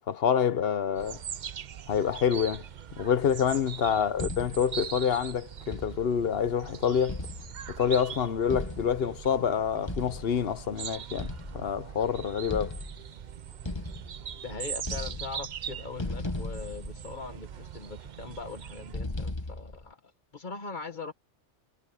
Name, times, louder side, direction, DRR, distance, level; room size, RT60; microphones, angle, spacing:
voice 1, 0.1-1.2 1.9-2.6 3.0-7.2 7.7-12.8, left 7 dB, 55° left, 1.0 m, -27 dB
sound 1, 1.0-18.9, right 8 dB, 50° right, 0.6 m, -41 dB
sound 2, 4.2-4.8 5.7-6.3 7.1-7.9 8.5-9.3 9.9-10.5 11.2-12.0 12.5-13.2 13.6-14.5 14.8-15.6 16.0-17.5 18.9-19.9, left 2 dB, 20° left, 1.4 m, -37 dB
voice 2, 14.4-21.1, left 4 dB, 40° left, 1.8 m, -41 dB
omnidirectional pair, 1.2 m